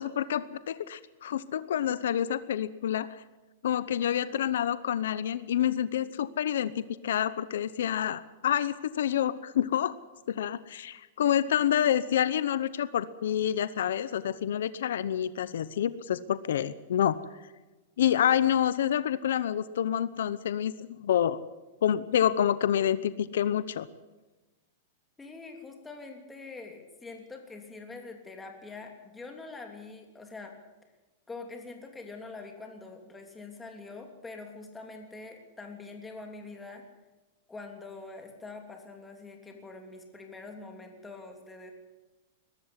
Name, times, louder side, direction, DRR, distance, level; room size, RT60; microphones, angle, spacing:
voice 1, 0.0-3.2 3.6-10.0 10.3-17.2 18.0-21.4 21.8-23.9, left 10 dB, 85° left, 16 dB, 0.9 m, -28 dB
voice 2, 25.2-30.5 31.3-36.8 37.5-41.7, left 3 dB, 10° left, 3 dB, 3.1 m, -44 dB
21.5 x 13.5 x 9.7 m, 1.1 s
supercardioid pair, 155°, 0 cm